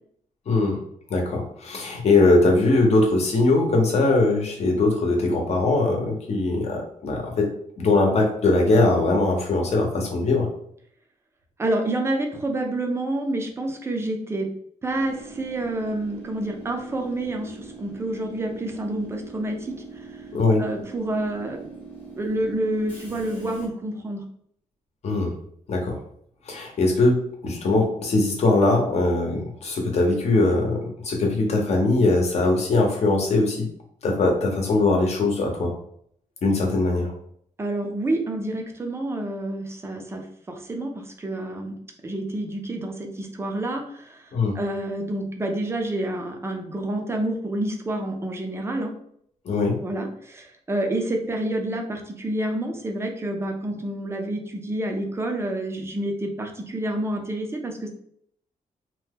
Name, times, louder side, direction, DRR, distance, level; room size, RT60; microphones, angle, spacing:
voice 1, 0.5-0.8 1.1-7.5 7.8-10.5 20.3-20.6 25.0-25.3 25.7-26.0 26.4-33.7 34.0-35.7 36.4-37.1 44.3-44.6 49.4-49.8, left 2 dB, 50° left, 1 dB, 0.8 m, -21 dB
voice 2, 11.6-14.5 14.8-20.2 20.6-21.7 22.2-24.2 37.6-41.8 42.0-48.9 49.8-57.9, right 1 dB, 20° right, 2 dB, 0.5 m, -28 dB
Train / Subway metro underground, 14.9-23.7, right 3 dB, 10° left, 0.8 m, -42 dB
2.8 x 2.2 x 3.4 m, 0.66 s
wide cardioid pair, 160°, 14 cm